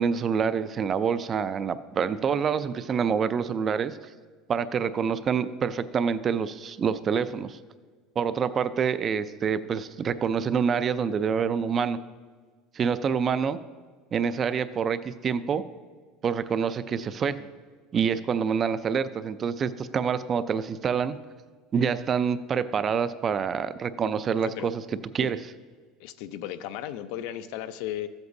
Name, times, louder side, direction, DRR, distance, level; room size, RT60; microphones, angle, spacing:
voice 1, 0.0-4.0 4.5-7.6 8.2-12.0 12.7-13.6 14.1-15.6 16.2-17.4 17.9-21.2 21.7-24.8 25.1-25.4, right 6 dB, 25° right, 14 dB, 0.3 m, -26 dB
voice 2, 24.4-24.7 25.2-25.3 26.0-28.1, left 12 dB, 70° left, 12 dB, 0.5 m, -35 dB
14.0 x 7.9 x 2.7 m, 1.5 s
cardioid pair, 155°, 0 cm